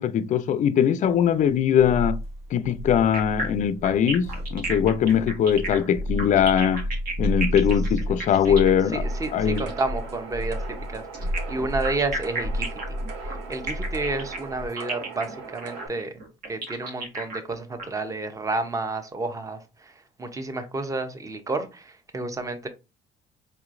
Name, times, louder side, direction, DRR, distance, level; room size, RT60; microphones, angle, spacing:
voice 1, 0.0-2.1 2.5-6.8 7.2-9.0 9.3-9.7, left 8 dB, 50° left, 0.4 m, -21 dB
sound 1, 1.2-14.7, equal, 40° right, 1.1 m, -32 dB
sound 2, 3.1-9.9 11.1-17.8, right 3 dB, 55° right, 1.3 m, -33 dB
voice 2, 8.5-12.7 13.2-16.2 16.5-22.7, right 3 dB, 20° right, 0.7 m, -31 dB
sound 3, 9.0-15.9, right 5 dB, 85° right, 0.9 m, -40 dB
4.6 x 2.9 x 2.5 m
cardioid pair, 110°, 17 cm